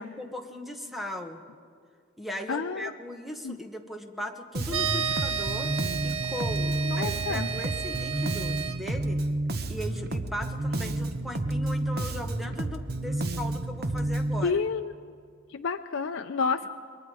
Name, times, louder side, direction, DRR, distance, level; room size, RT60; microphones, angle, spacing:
voice 1, 0.0-1.4 2.2-5.7 6.0-9.2 9.7-14.6, left 1 dB, ahead, 4 dB, 1.3 m, -38 dB
voice 2, 2.5-2.9 3.4-3.6 6.8-7.5 14.4-14.9 15.5-16.7, left 5 dB, 70° left, 5 dB, 0.6 m, -29 dB
Bass guitar, 4.5-14.4, right 1 dB, 50° right, 1.0 m, -30 dB
sound 1, 4.7-8.8, right 7 dB, 80° right, 1.7 m, -32 dB
28.5 x 22.5 x 4.9 m, 2.1 s
head